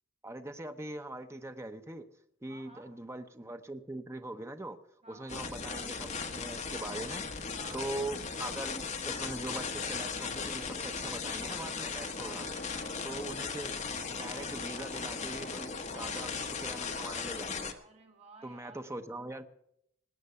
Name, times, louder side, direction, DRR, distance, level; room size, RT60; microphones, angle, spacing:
voice 1, 0.2-2.0 2.4-4.8 5.1-12.4 13.0-13.8 14.1-17.7 18.4-19.5, right 2 dB, 15° right, 8 dB, 0.7 m, -42 dB
voice 2, 2.5-2.9 5.0-5.4 7.5-7.8 12.2-13.0 17.8-18.9, right 3 dB, 30° right, 3 dB, 2.7 m, -54 dB
sound 1, 5.3-17.7, left 5 dB, 35° left, 1.1 m, -37 dB
19.5 x 8.0 x 6.8 m, 0.75 s
head